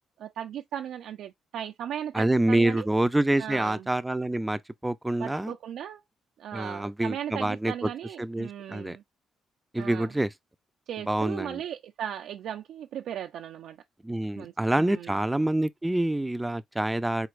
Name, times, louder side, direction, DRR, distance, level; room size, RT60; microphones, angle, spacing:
voice 1, 0.2-2.9 3.4-3.9 5.2-6.0 6.4-9.0 9.8-10.1 10.9-13.8 14.4-15.2, right 10 dB, 75° right, 0.5 m, -37 dB
voice 2, 2.1-5.5 6.5-7.9 8.2-9.0 9.7-10.3 11.1-11.6 14.0-17.3, right 1 dB, 10° right, 0.5 m, -27 dB
4.7 x 3.9 x 2.5 m
cardioid pair, 90°, 0 cm